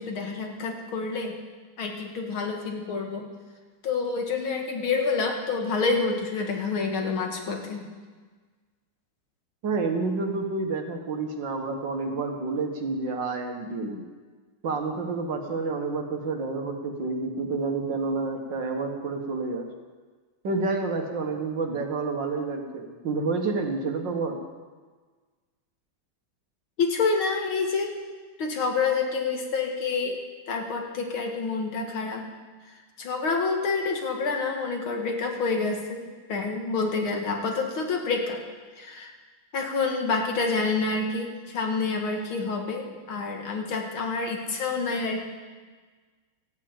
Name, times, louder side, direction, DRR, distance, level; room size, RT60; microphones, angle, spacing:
voice 1, 0.0-1.3 1.8-3.3 3.8-7.8 26.8-27.9 28.4-30.2 30.5-32.2 33.0-36.0 36.3-38.4 38.8-39.1 39.5-45.2, left 4 dB, 85° left, 2 dB, 2.6 m, -28 dB
voice 2, 9.6-14.0 14.6-19.7 20.4-24.4, right 3 dB, 65° right, 3 dB, 2.1 m, -29 dB
14.0 x 8.5 x 8.8 m, 1.4 s
omnidirectional pair, 2.2 m